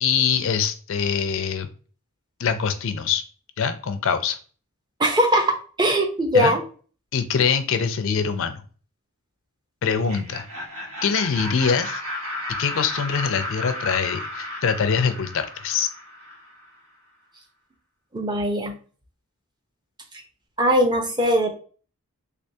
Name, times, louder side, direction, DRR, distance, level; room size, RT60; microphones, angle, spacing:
voice 1, 0.0-1.7 2.4-3.2 3.6-4.4 6.3-6.5 7.1-8.6 9.8-10.4 11.0-12.0 12.6-15.9, left 6 dB, 60° left, 10 dB, 0.4 m, -23 dB
voice 2, 5.0-6.6 18.1-18.7 20.6-21.5, equal, 20° right, 4 dB, 0.5 m, -20 dB
Laughter, 9.9-16.7, left 1 dB, 85° right, 1.3 m, -34 dB
3.3 x 3.3 x 2.7 m, 0.40 s
head